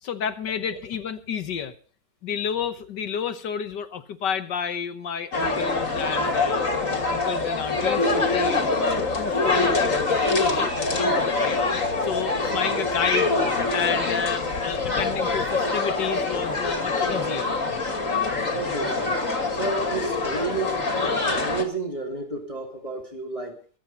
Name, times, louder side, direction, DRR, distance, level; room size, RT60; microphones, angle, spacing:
voice 1, 0.0-1.7 2.2-6.7 7.1-11.6 12.0-13.3 13.7-17.5 19.6-19.7, left 7 dB, 70° left, 11 dB, 1.8 m, -31 dB
sound 1, 5.3-21.6, left 3 dB, 45° left, 2.8 m, -24 dB
voice 2, 18.5-19.2 19.5-23.6, right 3 dB, 15° left, 3 dB, 2.5 m, -31 dB
22.5 x 8.8 x 5.4 m, 0.41 s
omnidirectional pair, 2.0 m